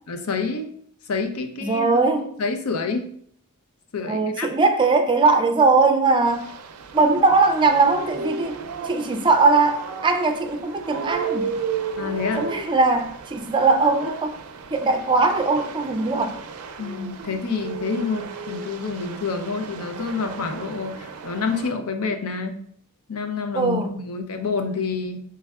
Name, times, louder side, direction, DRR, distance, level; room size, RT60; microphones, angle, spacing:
voice 1, 0.1-0.7 1.0-2.1 2.4-3.1 3.9-4.5 12.0-12.5 16.8-22.6 23.1-25.2, left 4 dB, 75° left, 6 dB, 0.6 m, -28 dB
voice 2, 1.6-2.3 4.0-6.5 6.9-8.6 8.8-11.6 12.4-14.4 14.7-16.4 23.5-23.9, right 3 dB, 20° right, 6 dB, 0.4 m, -20 dB
sound 1, 6.2-21.7, right 5 dB, 85° right, 0.4 m, -34 dB
5.4 x 3.2 x 2.3 m, 0.63 s
head